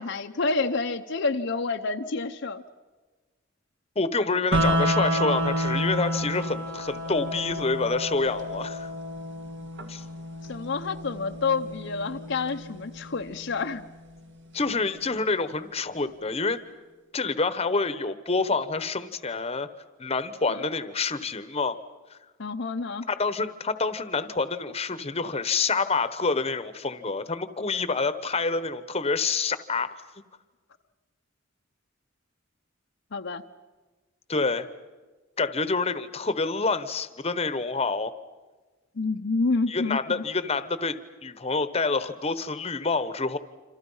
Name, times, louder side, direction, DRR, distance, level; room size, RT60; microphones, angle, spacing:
voice 1, 0.0-2.6 10.5-13.8 20.5-20.6 22.4-23.1 33.1-33.4 39.0-40.2, left 3 dB, 60° left, 5 dB, 0.8 m, -28 dB
voice 2, 3.9-8.9 9.9-10.0 14.5-16.6 17.1-19.7 20.0-21.8 23.1-30.0 34.3-34.7 35.4-38.1 39.7-43.4, left 4 dB, 30° left, 12 dB, 1.0 m, -27 dB
sound 1, 4.5-14.5, equal, 60° right, 2.2 m, -30 dB
28.0 x 27.0 x 5.6 m, 1.3 s
head